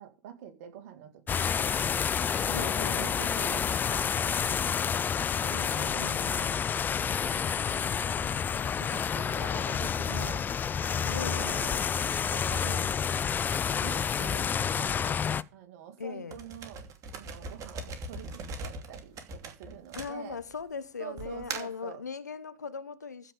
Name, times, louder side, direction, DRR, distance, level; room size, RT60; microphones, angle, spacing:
voice 1, 0.0-1.8 2.4-2.7 3.0-5.1 5.4-10.6 10.9-11.9 12.3-12.9 13.7-15.2 15.5-16.9 17.1-20.4 21.0-22.0, right 9 dB, 55° right, 2.6 m, -46 dB
sound 1, 1.3-15.4, left 7 dB, 20° left, 0.5 m, -29 dB
voice 2, 2.5-3.1 6.0-6.7 11.1-11.5 16.0-16.3 19.9-23.3, left 5 dB, 85° left, 1.0 m, -39 dB
sound 2, 16.3-20.6 21.2-21.8, right 3 dB, 35° right, 2.8 m, -40 dB
15.0 x 5.5 x 6.8 m
figure-of-eight pair, 90°, 9 cm